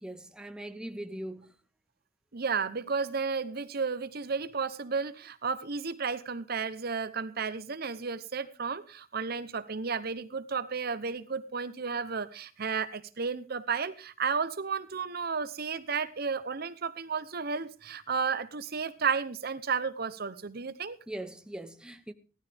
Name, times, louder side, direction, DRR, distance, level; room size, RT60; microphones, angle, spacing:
voice 1, 0.0-1.5 21.1-22.1, right 1 dB, 5° right, 0.9 m, -40 dB
voice 2, 2.3-21.0, right 5 dB, 50° right, 0.8 m, -33 dB
17.5 x 12.5 x 3.5 m
head